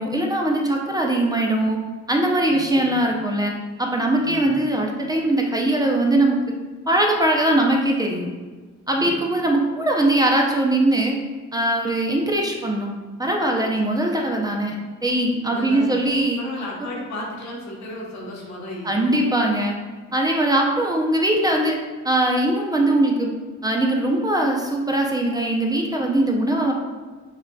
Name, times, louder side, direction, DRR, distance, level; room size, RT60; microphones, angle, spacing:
voice 1, 0.0-1.8 2.1-3.5 3.8-6.4 6.9-8.3 8.9-11.2 11.5-12.9 13.2-14.7 15.0-16.4 18.8-19.8 20.1-21.8 22.0-23.3 23.6-26.7, right 1 dB, 15° right, 0 dB, 0.5 m, -21 dB
voice 2, 2.4-3.0 4.2-4.5 8.9-9.2 15.5-16.0 16.4-19.2, left 1 dB, 65° left, -2 dB, 1.1 m, -34 dB
6.4 x 2.4 x 2.3 m, 1.4 s
cardioid pair, 90°, 30 cm